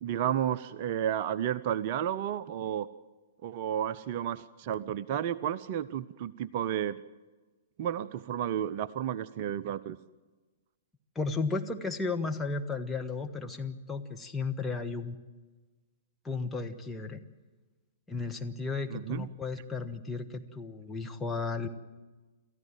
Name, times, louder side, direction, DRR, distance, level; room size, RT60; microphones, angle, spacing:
voice 1, 0.0-2.9 3.4-7.0 7.8-10.0 18.9-19.3, right 10 dB, 40° right, 15 dB, 0.6 m, -32 dB
voice 2, 11.1-15.2 16.2-17.2 18.1-21.7, left 4 dB, 10° left, 4 dB, 1.3 m, -34 dB
28.0 x 14.5 x 7.7 m, 1.3 s
figure-of-eight pair, 110°, 0 cm